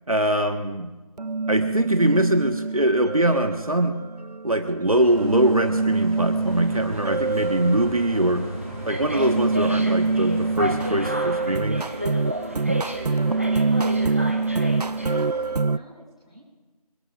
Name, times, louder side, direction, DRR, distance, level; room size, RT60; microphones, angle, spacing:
voice 1, 0.1-0.9 1.5-4.1 4.4-8.5 8.8-11.8, right 1 dB, 65° right, 6 dB, 1.5 m, -22 dB
sound 1, 1.2-15.8, right 3 dB, 85° right, 0.6 m, -26 dB
sound 2, 4.9-10.9, right 1 dB, 40° left, 7.2 m, -38 dB
sound 3, 6.5-15.3, equal, 20° right, 1.0 m, -33 dB
voice 2, 12.9-13.5 13.8-14.3 14.9-16.4, equal, 10° left, -8 dB, 4.9 m, -45 dB
27.0 x 18.5 x 2.6 m, 1.1 s
figure-of-eight pair, 175°, 20 cm